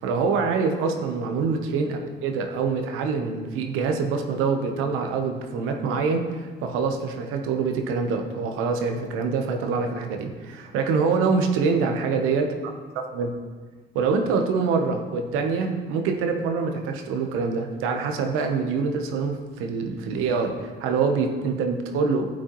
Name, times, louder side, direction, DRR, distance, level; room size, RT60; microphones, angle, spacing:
voice 1, 0.0-12.5 13.0-13.4 13.9-22.4, right 5 dB, 85° right, 5 dB, 1.0 m, -25 dB
11.5 x 8.7 x 3.1 m, 1.5 s
supercardioid pair, 65°, 21 cm